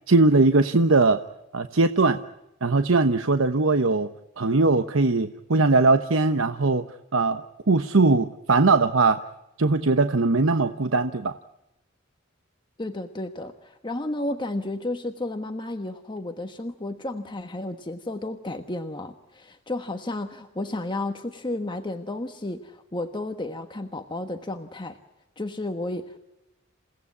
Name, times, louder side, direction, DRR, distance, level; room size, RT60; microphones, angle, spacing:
voice 1, 0.1-1.2 1.5-2.2 2.6-4.1 4.4-6.8 7.1-9.2 9.6-11.3, right 3 dB, 75° right, 9 dB, 1.0 m, -20 dB
voice 2, 12.8-25.0 25.4-26.2, left 2 dB, 25° left, 6 dB, 1.3 m, -32 dB
29.0 x 17.5 x 8.5 m, 0.92 s
head